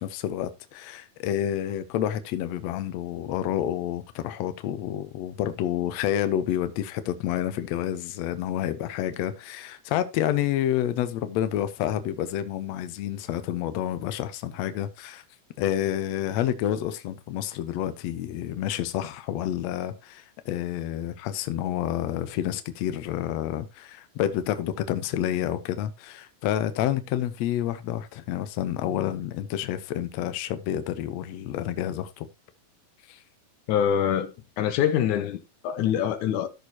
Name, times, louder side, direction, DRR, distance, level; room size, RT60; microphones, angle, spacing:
voice 1, 0.0-15.2 15.6-32.3 33.1-33.2, left 11 dB, 90° left, 1.5 m, -29 dB
voice 2, 33.7-36.5, left 9 dB, 70° left, 2.1 m, -25 dB
14.5 x 6.4 x 2.9 m
omnidirectional pair, 4.2 m